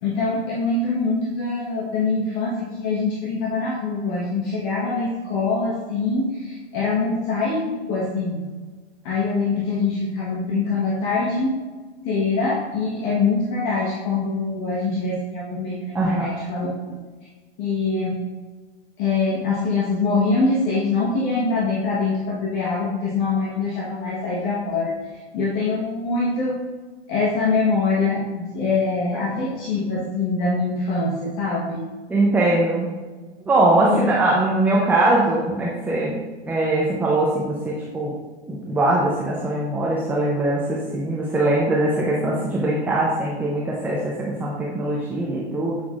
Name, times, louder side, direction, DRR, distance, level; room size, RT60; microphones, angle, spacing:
voice 1, 0.0-8.4 9.0-11.5 12.0-16.7 17.6-18.1 19.0-26.6 27.1-31.8 33.9-34.1, left 3 dB, 45° left, -4 dB, 1.2 m, -24 dB
voice 2, 15.9-16.3 32.1-32.9 33.5-36.2 36.4-38.1 38.5-45.8, right 2 dB, 5° right, -4 dB, 0.5 m, -21 dB
8.0 x 5.7 x 2.4 m, 1.3 s
hypercardioid pair, 130°, 33 cm